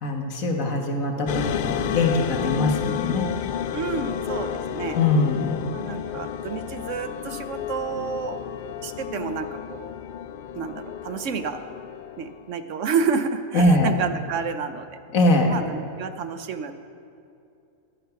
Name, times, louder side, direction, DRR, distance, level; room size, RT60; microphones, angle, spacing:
voice 1, 0.0-3.3 5.0-5.6 13.5-13.9 15.1-15.5, left 2 dB, 75° left, 3 dB, 1.8 m, -22 dB
sound 1, 1.3-12.5, left 9 dB, 90° left, 0.4 m, -31 dB
voice 2, 3.7-5.0 5.7-8.4 8.8-9.9 10.5-11.6 12.2-14.9 15.5-16.7, right 6 dB, 65° right, 9 dB, 1.0 m, -29 dB
15.0 x 10.5 x 5.9 m, 2.6 s
omnidirectional pair, 1.4 m